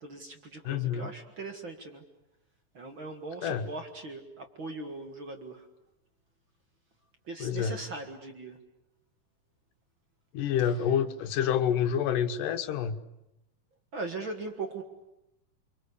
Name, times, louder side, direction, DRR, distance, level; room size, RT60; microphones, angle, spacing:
voice 1, 0.0-2.0 2.7-5.7 7.2-8.6 13.9-14.8, right 3 dB, 45° right, 6 dB, 2.2 m, -40 dB
voice 2, 0.6-1.1 3.4-3.7 7.4-7.8 10.3-13.0, left 8 dB, 80° left, 9 dB, 2.8 m, -28 dB
29.5 x 24.0 x 8.4 m, 0.90 s
omnidirectional pair, 3.8 m